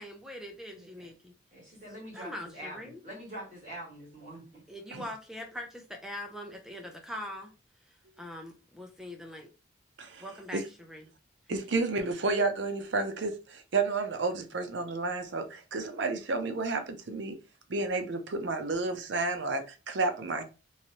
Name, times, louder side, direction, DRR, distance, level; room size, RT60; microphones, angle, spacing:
voice 1, 0.0-1.3 2.1-3.0 4.7-7.5 8.2-9.5 10.2-11.1, left 1 dB, 5° right, 0.6 m, -42 dB
voice 2, 0.7-1.0 1.5-4.6, equal, 40° right, 1.6 m, -45 dB
voice 3, 11.5-17.4 17.7-20.4, right 3 dB, 75° right, 0.6 m, -31 dB
3.1 x 2.7 x 2.8 m
head